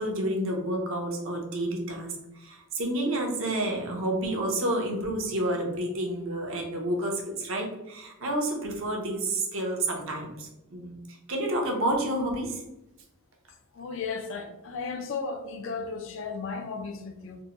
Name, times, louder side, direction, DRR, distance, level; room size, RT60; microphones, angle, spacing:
voice 1, 0.0-12.6, right 1 dB, 65° right, 0.7 m, -30 dB
voice 2, 13.8-17.4, left 4 dB, 60° left, 0.4 m, -35 dB
3.5 x 2.1 x 2.9 m
head